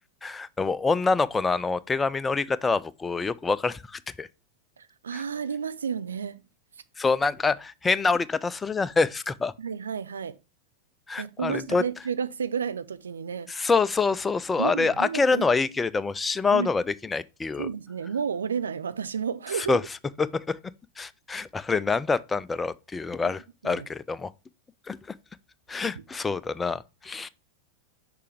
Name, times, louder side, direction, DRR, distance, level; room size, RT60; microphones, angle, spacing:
voice 1, 0.2-4.3 5.1-5.2 7.0-9.5 11.1-11.8 13.5-17.7 19.6-19.8 20.2-20.6 21.0-24.3 24.9-25.0 25.7-27.3, left 4 dB, 15° left, 0.3 m, -26 dB
voice 2, 4.8-6.4 9.6-10.4 11.2-13.5 14.6-15.4 16.5-16.7 17.6-19.8 23.2-23.3 23.6-23.9 25.9-26.0, right 7 dB, 70° right, 0.5 m, -31 dB
6.6 x 4.9 x 3.3 m
figure-of-eight pair, 90°, 0 cm